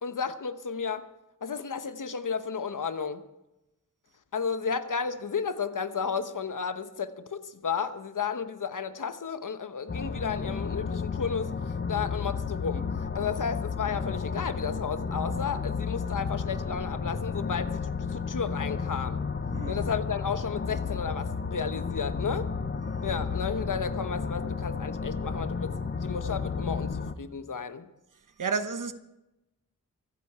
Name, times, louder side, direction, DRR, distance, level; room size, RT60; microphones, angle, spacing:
voice 1, 0.0-1.1 1.4-3.2 4.3-19.2 19.7-22.5 23.0-27.9, left 6 dB, 75° left, 1.0 m, -33 dB
sound 1, 9.9-27.1, left 5 dB, 35° left, 0.8 m, -32 dB
voice 2, 28.4-28.9, right 5 dB, 75° right, 1.1 m, -30 dB
24.5 x 8.6 x 4.8 m
wide cardioid pair, 90°, 32 cm